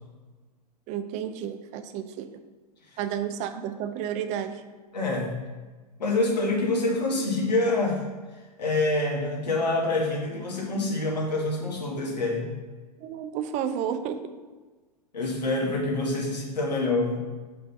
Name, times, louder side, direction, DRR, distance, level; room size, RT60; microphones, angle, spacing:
voice 1, 0.9-2.4 3.0-4.6 13.0-14.3, right 9 dB, 35° right, 10 dB, 0.5 m, -31 dB
voice 2, 4.9-5.3 6.0-8.0 8.6-12.4 15.1-17.2, left 2 dB, 85° left, -1 dB, 2.0 m, -26 dB
5.9 x 5.3 x 5.6 m, 1.3 s
hypercardioid pair, 110°, 21 cm